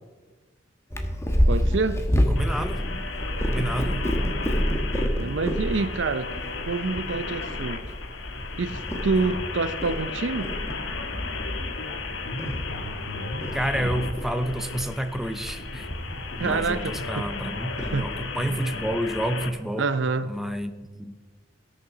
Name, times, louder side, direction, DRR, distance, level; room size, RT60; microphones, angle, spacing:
Purr, 0.9-18.8, equal, 15° left, 1.2 m, -29 dB
voice 1, 1.5-2.0 5.1-6.3 6.7-7.9 8.6-10.5 16.4-17.3 17.8-18.1 19.8-20.3, right 4 dB, 75° right, 0.6 m, -27 dB
voice 2, 2.3-2.8 3.5-4.0 13.5-15.9 16.4-19.8 20.3-21.2, equal, ahead, 0.7 m, -29 dB
sound 1, 2.4-19.5, left 3 dB, 80° left, 1.3 m, -35 dB
16.5 x 6.7 x 6.1 m
head